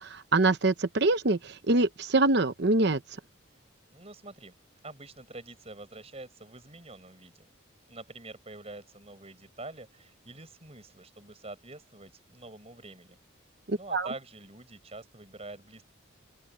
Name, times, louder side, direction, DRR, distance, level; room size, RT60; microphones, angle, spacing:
voice 1, 0.0-3.0 13.7-14.1, right 2 dB, 55° right, 0.9 m, -25 dB
voice 2, 3.9-4.5 4.8-7.5 7.9-13.2 13.7-15.8, right 2 dB, 30° right, 5.4 m, -46 dB
open air
head